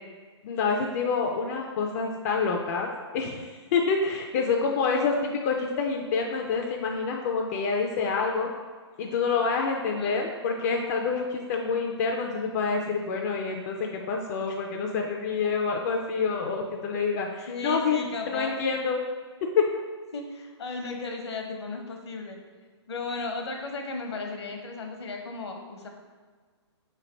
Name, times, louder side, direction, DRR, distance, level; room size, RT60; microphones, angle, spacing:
voice 1, 0.4-8.5 9.0-18.0 18.3-19.0 19.4-19.7, left 5 dB, 35° left, 1 dB, 0.4 m, -27 dB
voice 2, 9.9-10.2 17.5-18.6 20.1-22.4 22.9-25.9, left 3 dB, 65° left, 3 dB, 0.8 m, -35 dB
4.0 x 3.2 x 3.9 m, 1.5 s
figure-of-eight pair, 130°, 15 cm